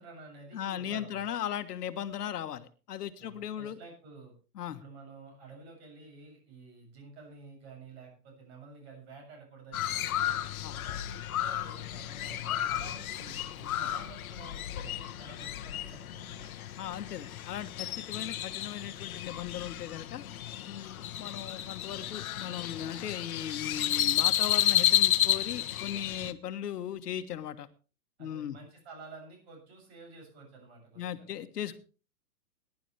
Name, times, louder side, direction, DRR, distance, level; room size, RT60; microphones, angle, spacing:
voice 1, 0.0-1.4 3.2-4.3 4.7-10.4 10.7-16.5 28.2-31.2, right 4 dB, 40° right, 2 dB, 7.3 m, -51 dB
voice 2, 0.5-3.8 4.5-4.8 10.6-10.7 13.8-13.9 16.8-20.2 20.6-27.7 28.2-28.6 31.0-31.8, left 10 dB, 80° left, 9 dB, 1.4 m, -38 dB
Crow, 9.7-26.3, left 12 dB, 65° left, 1.2 m, -32 dB
19.5 x 11.0 x 3.3 m, 0.35 s
hypercardioid pair, 170°, 46 cm